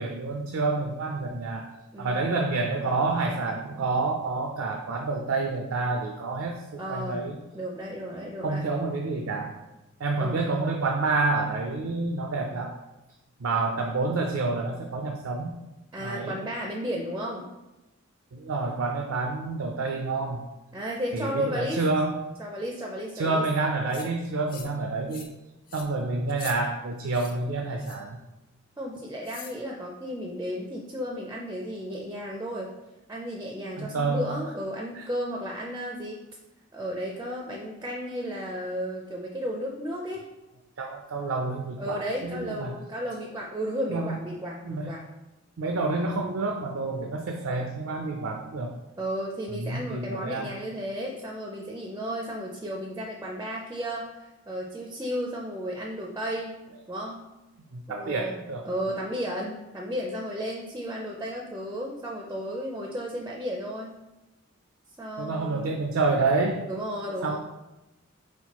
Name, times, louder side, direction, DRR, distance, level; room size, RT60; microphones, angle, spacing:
voice 1, 0.0-1.7 2.0-7.4 8.4-9.6 10.0-12.8 13.4-15.6 16.0-16.4 18.3-20.5 21.1-22.1 23.1-25.3 25.7-28.2 33.8-34.2 35.0-35.1 40.8-42.8 43.9-44.2 44.6-44.9 45.6-48.7 49.5-50.6 57.7-58.6 65.2-66.7 67.2-67.4, right 3 dB, 75° right, 3 dB, 0.4 m, -28 dB
voice 2, 1.9-2.3 6.8-8.7 10.2-10.5 15.9-17.5 20.7-21.8 22.4-23.5 28.8-32.7 33.1-36.2 36.7-40.2 41.8-45.1 49.0-56.6 56.9-57.3 57.9-64.0 65.0-65.7 66.7-67.4, equal, 15° right, -1 dB, 0.4 m, -33 dB
sound 1, 23.9-24.1 24.5-24.8 25.1-25.4 25.7-25.9 26.3-26.6 27.1-27.3 27.8-28.1 29.2-29.6, left 6 dB, 40° left, 0.5 m, -43 dB
4.3 x 4.2 x 2.9 m, 1.0 s
head